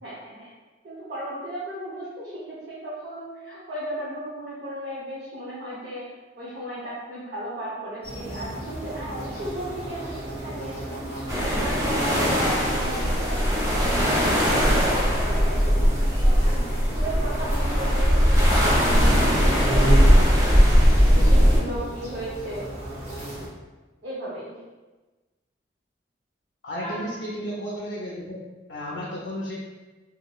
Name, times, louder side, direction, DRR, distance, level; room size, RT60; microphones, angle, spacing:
voice 1, 0.0-0.5 0.8-6.0 6.4-11.0 11.4-15.9 16.9-20.5 21.1-22.7 24.0-24.6 26.8-27.1, right 1 dB, 60° right, -9 dB, 0.7 m, -35 dB
sound 1, 8.0-23.5, right 1 dB, 35° right, 1.1 m, -34 dB
sound 2, 11.3-21.6, equal, 20° right, 0.5 m, -19 dB
voice 2, 26.6-28.4 28.7-29.6, equal, 70° left, -5 dB, 0.5 m, -33 dB
2.8 x 2.7 x 2.3 m, 1.2 s
head